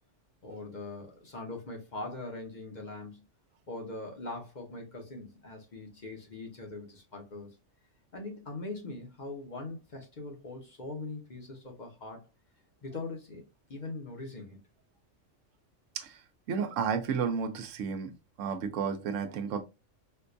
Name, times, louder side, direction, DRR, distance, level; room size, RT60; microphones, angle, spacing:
voice 1, 0.4-3.2 3.7-7.5 8.1-12.2 12.8-13.4 13.7-14.6, left 2 dB, 45° left, 0.8 m, -41 dB
voice 2, 16.5-18.1 18.4-19.6, right 6 dB, 85° right, 1.0 m, -32 dB
4.4 x 2.3 x 2.5 m
omnidirectional pair, 1.3 m